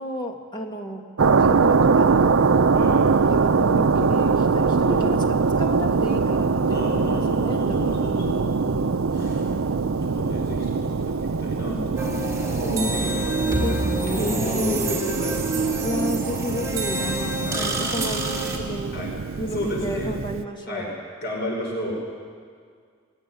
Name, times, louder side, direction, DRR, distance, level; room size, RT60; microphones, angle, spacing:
voice 1, 0.0-2.4 3.3-5.2 5.6-8.0 12.4-12.6 13.0-14.5 15.8-19.0 19.4-21.0, equal, 20° left, 2 dB, 2.1 m, -33 dB
sound 1, 1.2-20.4, right 4 dB, 70° right, 0.6 m, -23 dB
voice 2, 2.7-3.1 4.9-5.2 6.7-8.9 9.1-9.5 10.0-12.0 12.6-13.3 14.1-15.7 17.4-17.7 18.9-19.1 19.5-20.1 20.7-20.9 21.2-22.0, equal, 55° left, -1 dB, 5.2 m, -31 dB
sound 2, 12.0-18.6, right 2 dB, 15° right, 3.3 m, -27 dB
21.5 x 18.0 x 9.9 m, 2.1 s
head